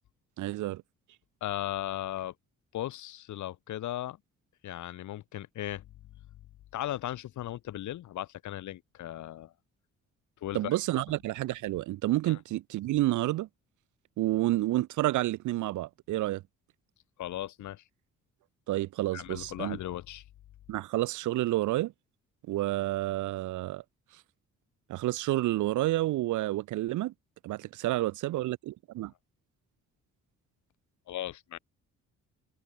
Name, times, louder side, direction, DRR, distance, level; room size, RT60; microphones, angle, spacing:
voice 1, 0.4-0.8 10.5-13.5 14.2-16.4 18.7-19.8 20.7-21.9 22.5-23.8 24.9-27.1 27.4-29.1, right 16 dB, 75° right, 0.7 m, -29 dB
voice 2, 1.4-2.3 2.7-4.2 4.6-5.9 6.7-9.5 10.4-10.7 12.3-12.4 17.2-17.8 19.1-20.2 31.1-31.6, left 13 dB, 75° left, 1.6 m, -37 dB
cardioid pair, 90°, 30 cm